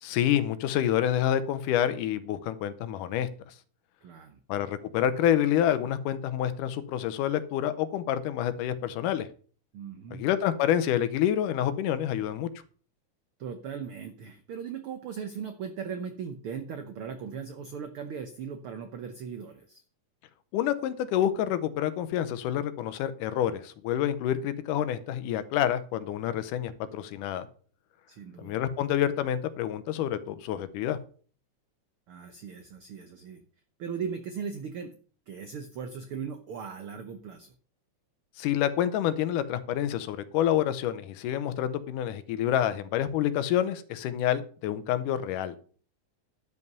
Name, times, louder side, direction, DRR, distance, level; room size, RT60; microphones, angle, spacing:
voice 1, 0.0-3.5 4.5-9.3 10.1-12.5 20.5-27.5 28.4-31.0 38.4-45.6, left 11 dB, 85° left, 12 dB, 2.3 m, -28 dB
voice 2, 4.0-4.4 9.7-10.2 13.4-19.8 28.1-28.6 32.1-33.4 33.8-34.9 35.3-37.5, right 6 dB, 90° right, 8 dB, 1.1 m, -38 dB
11.0 x 5.5 x 6.7 m, 0.43 s
omnidirectional pair, 3.6 m